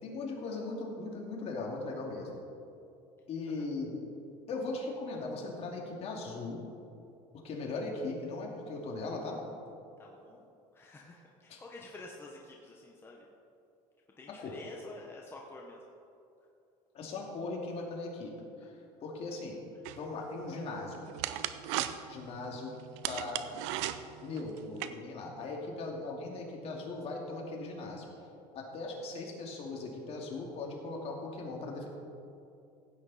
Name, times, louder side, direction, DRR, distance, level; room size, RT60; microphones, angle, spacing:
voice 1, 0.0-2.3 3.3-3.9 4.5-6.6 7.4-9.4 11.5-11.6 14.3-14.5 16.9-18.3 19.0-19.6 20.0-21.0 22.1-22.7 23.1-23.4 24.2-28.1 28.5-31.9, left 3 dB, 45° left, -1 dB, 2.5 m, -39 dB
voice 2, 10.0-10.5 10.7-13.3 14.2-15.8 21.2-21.9, left 2 dB, 15° left, -1 dB, 1.1 m, -50 dB
sound 1, 19.9-24.9, right 13 dB, 90° right, 0.6 m, -38 dB
16.0 x 8.7 x 4.2 m, 2.6 s
cardioid pair, 125°, 14 cm